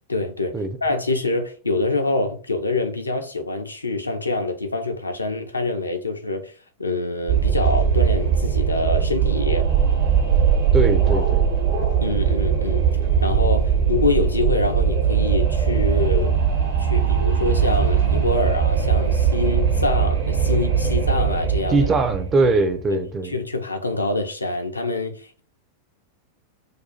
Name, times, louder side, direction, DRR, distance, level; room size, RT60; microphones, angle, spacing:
voice 1, 0.1-0.6 0.8-6.5 6.8-9.6 12.0-12.8 13.2-16.3 16.8-21.9 22.9-23.0 23.2-25.4, left 2 dB, 80° left, 0.5 m, -25 dB
Wind, 7.3-22.6, right 7 dB, 60° right, 1.0 m, -20 dB
voice 2, 10.7-11.5 21.7-23.3, right 3 dB, 25° right, 0.5 m, -21 dB
2.6 x 2.3 x 4.1 m
figure-of-eight pair, 90°, 0 cm